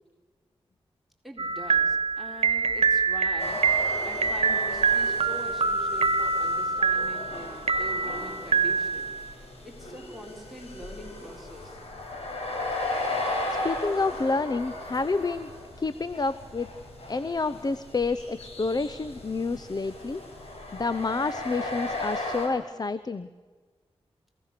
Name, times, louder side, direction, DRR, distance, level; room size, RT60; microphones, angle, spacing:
voice 1, 1.2-3.6 4.0-7.3 7.7-9.1 9.6-11.8, equal, ahead, 1 dB, 4.2 m, -43 dB
sound 1, 1.4-9.3, right 4 dB, 70° right, 1.3 m, -25 dB
sound 2, 3.4-22.5, left 2 dB, 70° left, 5.7 m, -36 dB
voice 2, 13.6-15.5 15.8-16.7 17.1-20.2 20.7-23.3, left 3 dB, 40° left, 14 dB, 0.8 m, -29 dB
28.0 x 17.0 x 6.8 m, 1.4 s
cardioid pair, 55°, 11 cm